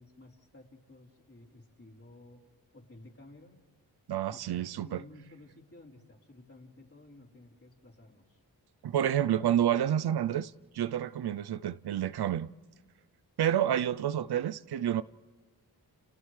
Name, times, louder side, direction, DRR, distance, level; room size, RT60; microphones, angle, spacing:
voice 1, 0.0-2.4 2.7-3.6 4.3-8.4, left 2 dB, 35° left, 4.0 m, -54 dB
voice 2, 4.1-5.0 8.8-12.5 13.4-15.0, right 10 dB, 75° right, 0.6 m, -29 dB
29.5 x 29.5 x 3.3 m
cardioid pair, 45°, 39 cm